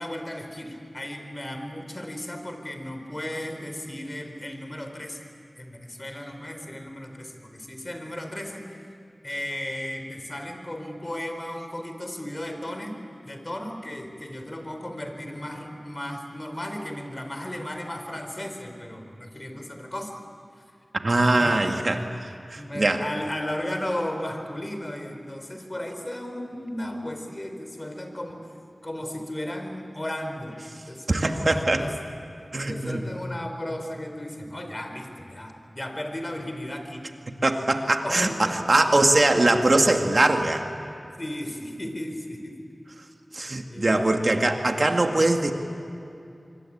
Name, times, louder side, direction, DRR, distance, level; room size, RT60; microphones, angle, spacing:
voice 1, 0.0-5.2 5.6-8.9 9.2-13.0 13.2-20.2 20.6-20.7 21.4-21.6 22.6-28.6 28.8-30.6 30.9-31.9 32.7-37.0 38.0-38.6 41.2-42.6 43.7-44.1, left 1 dB, 30° left, 5 dB, 4.3 m, -35 dB
voice 2, 21.0-22.0 22.5-23.0 31.1-31.8 32.5-33.0 37.4-40.7 43.3-45.5, right 2 dB, 55° right, 4 dB, 2.3 m, -22 dB
25.5 x 24.5 x 8.9 m, 2.6 s
wide cardioid pair, 45°, 0 cm